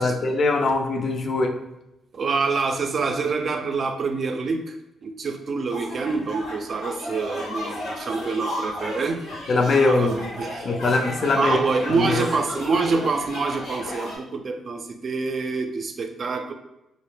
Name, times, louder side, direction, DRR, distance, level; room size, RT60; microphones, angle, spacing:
voice 1, 0.0-1.6 9.5-10.2 10.6-11.6 11.9-12.2, left 3 dB, 55° left, 5 dB, 0.4 m, -22 dB
voice 2, 2.1-4.8 5.0-9.2 9.9-10.7 11.4-16.5, right 4 dB, 55° right, 5 dB, 0.3 m, -26 dB
sound 1, 5.7-14.2, left 1 dB, 85° left, 0.9 m, -34 dB
2.1 x 2.0 x 3.1 m, 0.94 s
supercardioid pair, 50°, 0 cm